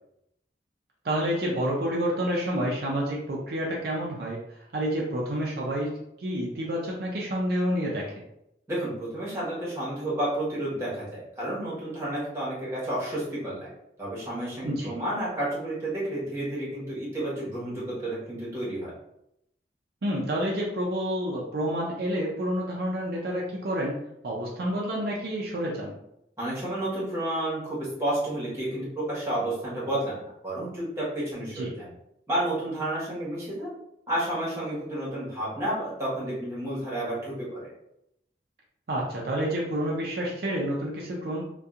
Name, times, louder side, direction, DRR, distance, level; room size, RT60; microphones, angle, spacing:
voice 1, 1.0-4.4 4.7-8.2 14.6-14.9 20.0-24.0 24.2-26.0 31.5-31.7 38.9-41.5, equal, 60° right, -3 dB, 0.4 m, -29 dB
voice 2, 8.7-13.7 14.0-18.9 26.4-31.9 32.3-33.7 34.1-37.7, right 1 dB, 15° right, -8 dB, 1.1 m, -31 dB
2.7 x 2.2 x 2.3 m, 0.80 s
head